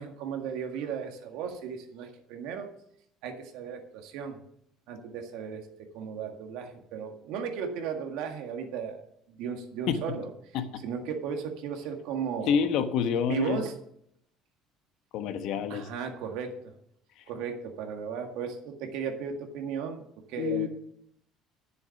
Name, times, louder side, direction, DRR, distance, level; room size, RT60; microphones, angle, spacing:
voice 1, 0.0-2.7 3.2-4.4 4.9-5.7 5.9-9.0 9.3-10.3 10.8-12.6 13.3-13.8 15.7-16.7 17.3-20.7, right 7 dB, 80° right, 4 dB, 1.8 m, -35 dB
voice 2, 12.5-13.6 15.1-15.8 20.4-20.7, left 7 dB, 70° left, 9 dB, 1.1 m, -27 dB
10.0 x 7.1 x 5.9 m, 0.72 s
cardioid pair, 120°, 0 cm